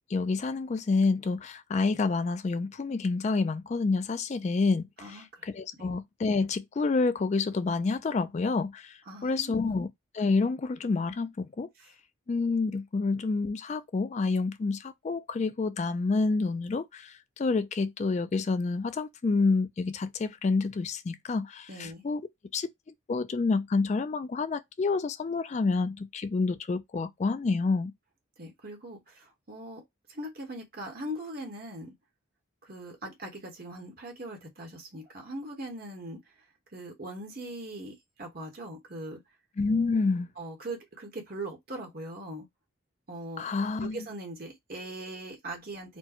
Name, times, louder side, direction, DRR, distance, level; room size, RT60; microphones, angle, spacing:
voice 1, 0.1-9.9 10.1-11.7 12.3-22.2 22.5-22.7 23.1-27.9 39.6-40.3 43.4-44.1, left 4 dB, 35° left, 0.3 m, -28 dB
voice 2, 5.0-5.4 5.8-5.9 9.1-9.7 11.8-11.9 21.7-22.0 28.4-29.8 30.1-31.9 32.6-36.3 36.7-39.2 40.4-42.5 43.1-43.4 43.8-46.0, right 1 dB, 50° right, 1.1 m, -40 dB
4.3 x 2.2 x 4.3 m
head